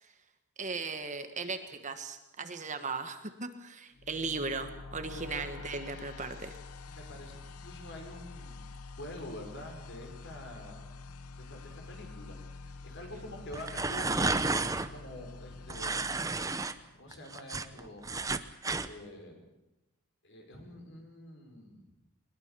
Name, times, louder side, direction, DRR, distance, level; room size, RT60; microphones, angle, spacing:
voice 1, 0.6-6.6, right 4 dB, 35° right, 7 dB, 1.5 m, -37 dB
sound 1, 4.0-17.0, left 3 dB, 80° left, 0.9 m, -47 dB
voice 2, 5.1-5.5 6.9-8.7 9.0-10.8 11.5-16.2 16.9-18.1 18.8-19.4 20.2-21.9, left 1 dB, 55° left, 2 dB, 5.7 m, -47 dB
sound 2, 13.5-14.9 15.7-16.7 17.1-18.9, right 3 dB, 15° right, 0.7 m, -31 dB
21.5 x 21.5 x 6.9 m, 0.95 s
head